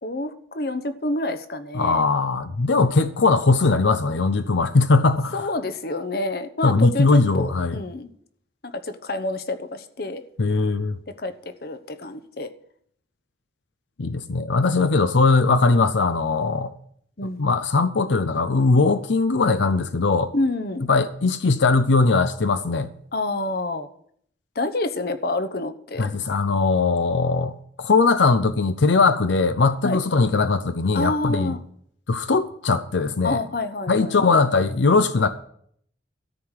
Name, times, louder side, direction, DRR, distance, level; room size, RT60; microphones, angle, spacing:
voice 1, 0.0-2.0 5.3-8.1 8.6-10.2 11.2-11.3 11.6-12.5 17.2-17.4 20.3-20.9 23.1-23.9 24.5-26.1 29.8-30.0 30.9-31.6 33.2-34.4, left 2 dB, 55° left, 0.9 m, -28 dB
voice 2, 1.7-5.5 6.6-7.8 10.4-11.0 14.0-16.7 17.4-20.3 20.9-22.9 26.0-31.5 32.1-33.4 33.9-35.3, left 3 dB, 85° left, 0.6 m, -20 dB
13.5 x 4.8 x 8.9 m
head